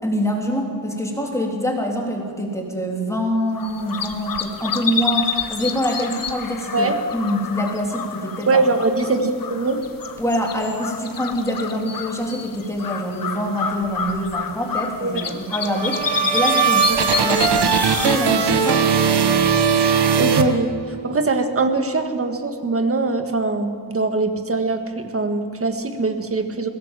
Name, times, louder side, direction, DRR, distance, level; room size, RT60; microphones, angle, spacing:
voice 1, 0.0-8.6 10.2-17.8 18.0-18.9, equal, 5° left, 0 dB, 3.4 m, -25 dB
sound 1, 3.5-19.6, left 6 dB, 50° left, 1.5 m, -29 dB
voice 2, 8.5-9.8 15.0-15.4 16.9-17.0 20.2-26.7, right 3 dB, 30° right, 6 dB, 1.8 m, -22 dB
sound 2, 15.5-21.1, right 6 dB, 70° right, 1.5 m, -19 dB
21.0 x 17.0 x 7.5 m, 2.2 s
wide cardioid pair, 135°, 42 cm